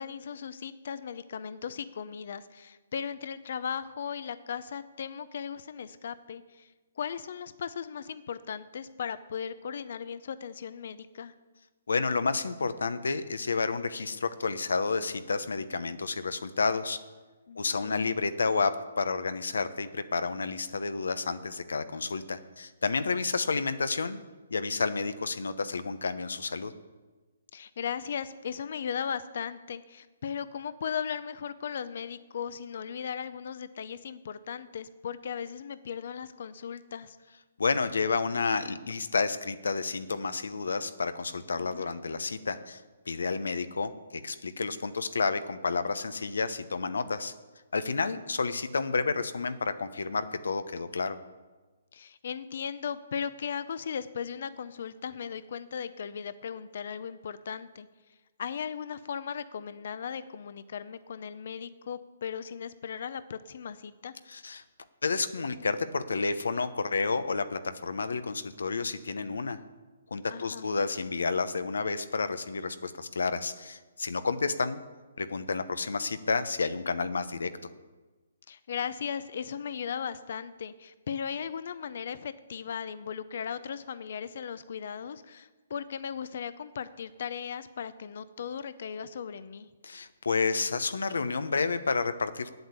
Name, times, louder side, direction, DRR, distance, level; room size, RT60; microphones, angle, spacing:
voice 1, 0.0-6.7 7.0-11.3 17.5-18.0 27.5-37.2 41.5-41.9 51.9-57.9 58.4-64.1 70.3-70.7 78.5-89.7, left 7 dB, 55° left, 14 dB, 0.6 m, -37 dB
voice 2, 11.9-17.0 17.6-24.2 24.5-26.7 37.6-42.8 43.1-47.3 47.7-51.2 64.3-64.6 65.0-69.6 70.1-74.8 75.2-77.5 89.8-92.5, left 4 dB, 90° left, 12 dB, 0.8 m, -30 dB
8.7 x 8.0 x 8.2 m, 1.3 s
hypercardioid pair, 160°, 0 cm